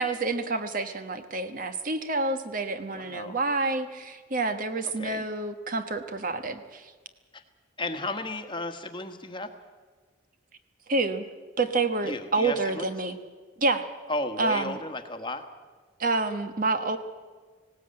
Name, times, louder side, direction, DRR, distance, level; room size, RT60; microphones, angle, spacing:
voice 1, 0.0-6.9 10.9-11.2 11.6-13.2 13.6-13.8 14.4-14.8 16.0-17.0, right 3 dB, 45° right, 9 dB, 1.2 m, -28 dB
voice 2, 2.9-3.4 5.0-5.2 7.3-7.4 7.8-9.5 12.0-12.9 14.1-15.4, left 2 dB, 25° left, 7 dB, 1.3 m, -34 dB
19.0 x 17.5 x 8.8 m, 1.4 s
head